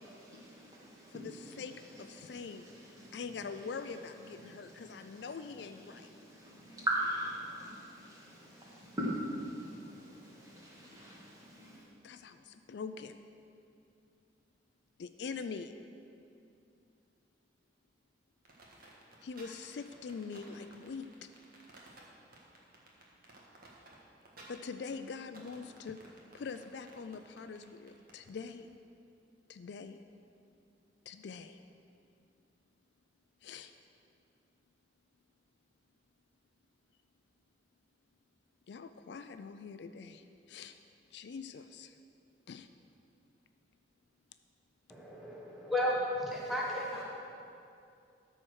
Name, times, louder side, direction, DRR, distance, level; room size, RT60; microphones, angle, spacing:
voice 1, 0.0-11.9 46.4-46.5, right 1 dB, 20° right, -6 dB, 2.2 m, -42 dB
voice 2, 1.1-2.6 3.1-6.1 12.0-13.2 15.0-15.7 19.2-21.1 24.5-26.0 26.3-28.8 29.5-30.0 31.1-31.6 33.4-33.7 38.7-40.8 41.1-42.0 42.5-42.7, left 5 dB, 65° left, 10 dB, 0.4 m, -44 dB
sound 1, 18.4-28.4, right 2 dB, 50° right, 1.6 m, -56 dB
voice 3, 44.9-47.0, left 1 dB, ahead, -4 dB, 1.2 m, -34 dB
13.0 x 4.5 x 6.3 m, 2.5 s
head